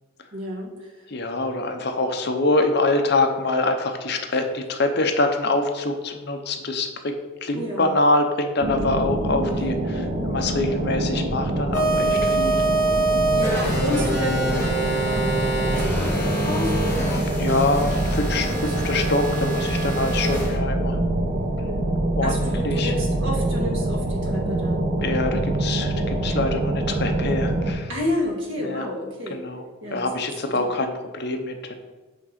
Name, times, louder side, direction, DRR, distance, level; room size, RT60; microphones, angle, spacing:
voice 1, 0.3-1.0 7.4-7.9 13.3-17.5 18.3-18.7 20.0-20.4 22.2-24.8 27.9-29.4 29.8-30.1 30.4-30.7, left 1 dB, 65° right, 0 dB, 1.6 m, -30 dB
voice 2, 1.1-12.6 17.2-21.0 22.1-22.3 22.6-22.9 25.0-27.9 28.6-28.9 29.3-29.6 29.9-31.7, left 2 dB, 50° left, 5 dB, 0.7 m, -25 dB
sound 1, 8.6-27.7, right 1 dB, 40° right, 0.8 m, -25 dB
sound 2, 11.7-20.6, right 2 dB, 10° left, 1.6 m, -25 dB
7.4 x 3.7 x 5.8 m, 1.2 s
head